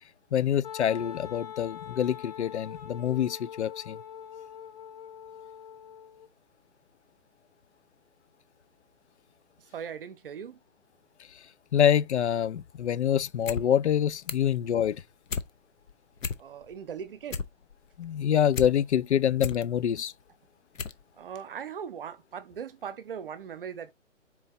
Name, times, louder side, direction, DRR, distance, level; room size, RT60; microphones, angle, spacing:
voice 1, 0.3-4.0 11.7-15.0 18.0-20.1, left 9 dB, 60° left, 0.5 m, -26 dB
Wind instrument woodwind instrument, 0.6-6.3, left 8 dB, 30° left, 0.8 m, -43 dB
voice 2, 9.7-10.6 16.4-17.4 21.2-23.9, right 7 dB, 45° right, 0.7 m, -39 dB
sound 1, 13.3-13.6 13.9-14.5 14.9-15.5 15.9-16.8 17.1-18.7 19.1-19.6 20.2-20.3 20.7-21.0 21.3-21.4, left 5 dB, 90° left, 0.8 m, -34 dB
4.4 x 2.6 x 4.2 m
hypercardioid pair, 150°, 38 cm